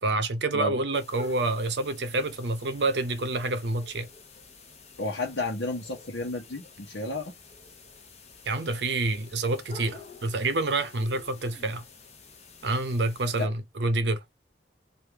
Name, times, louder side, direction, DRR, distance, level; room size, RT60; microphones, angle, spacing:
voice 1, 0.0-4.1 8.5-11.8 12.6-14.2, right 2 dB, 70° right, 0.7 m, -28 dB
sound 1, 0.9-13.5, left 4 dB, 35° left, 0.8 m, -49 dB
voice 2, 5.0-7.3 13.4-13.5, left 2 dB, 85° left, 0.9 m, -32 dB
3.3 x 2.5 x 3.3 m
head